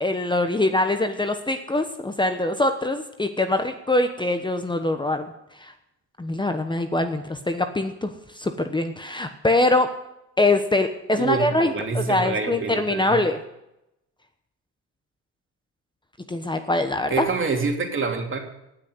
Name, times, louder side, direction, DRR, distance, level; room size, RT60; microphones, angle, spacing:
voice 1, 0.0-5.3 5.6-5.7 6.2-9.9 10.4-13.4 16.3-17.2, left 2 dB, 15° left, 7 dB, 1.1 m, -23 dB
voice 2, 11.1-13.2 17.1-18.4, right 4 dB, 40° right, 2 dB, 3.1 m, -26 dB
18.5 x 6.5 x 9.6 m, 0.87 s
cardioid pair, 90°, 30 cm